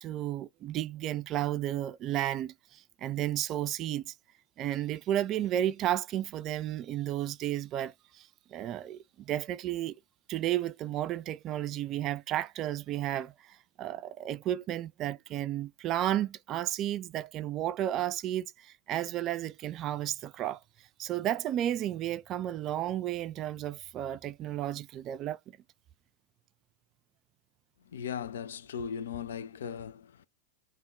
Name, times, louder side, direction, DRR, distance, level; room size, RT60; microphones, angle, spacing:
voice 1, 0.0-4.1 4.6-9.9 10.3-20.6 21.0-25.4, right 12 dB, 35° right, 0.3 m, -33 dB
voice 2, 27.9-30.3, left 7 dB, 65° left, 0.3 m, -38 dB
3.5 x 2.1 x 3.7 m
figure-of-eight pair, 90°, 0 cm